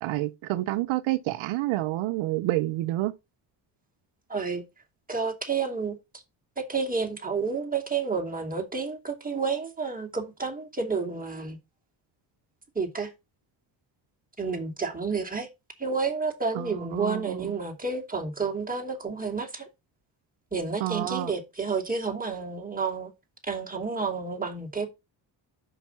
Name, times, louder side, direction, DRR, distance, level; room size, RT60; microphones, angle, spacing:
voice 1, 0.0-3.1 16.6-17.5 20.8-21.3, right 17 dB, 80° right, 0.7 m, -29 dB
voice 2, 4.3-4.6 5.1-6.0 6.6-11.6 12.7-13.1 14.4-15.5 15.8-19.7 20.5-23.1 23.4-24.9, right 4 dB, 15° right, 2.7 m, -30 dB
5.8 x 5.4 x 5.6 m
supercardioid pair, 65°, 47 cm